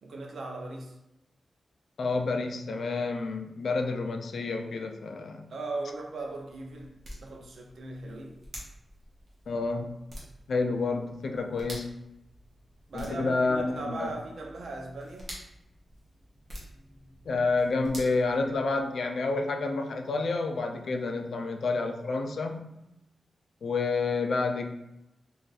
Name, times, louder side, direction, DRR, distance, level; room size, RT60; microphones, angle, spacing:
voice 1, 0.0-1.0 5.5-7.0 7.2-8.4 12.9-15.4, right 2 dB, 65° right, 1 dB, 0.5 m, -38 dB
voice 2, 2.0-5.5 9.5-10.0 10.5-12.0 12.9-14.1 17.3-22.7 23.6-24.7, left 3 dB, 65° left, 5 dB, 0.3 m, -29 dB
sound 1, 5.9-19.0, equal, 35° right, 0.8 m, -48 dB
2.4 x 2.4 x 3.9 m, 0.90 s
wide cardioid pair, 175°, 0 cm